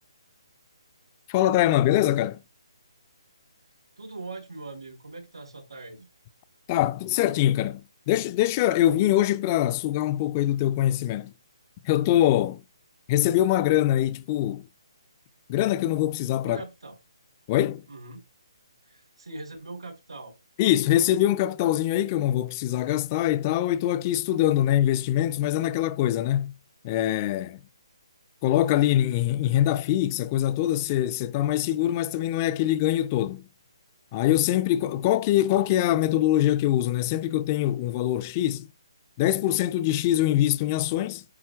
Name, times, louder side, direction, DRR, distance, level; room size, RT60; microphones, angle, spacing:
voice 1, 1.3-2.4 6.7-11.3 11.8-12.6 13.1-14.6 15.5-16.6 17.5-17.9 20.6-26.6 26.8-27.6 28.4-33.5 34.1-38.7 39.2-41.2, left 13 dB, 25° left, 0.3 m, -23 dB
voice 2, 4.0-6.1 16.4-17.0 17.9-18.2 18.9-20.3, right 2 dB, 80° right, 3.8 m, -41 dB
9.6 x 5.3 x 2.3 m
figure-of-eight pair, 140°, 3 cm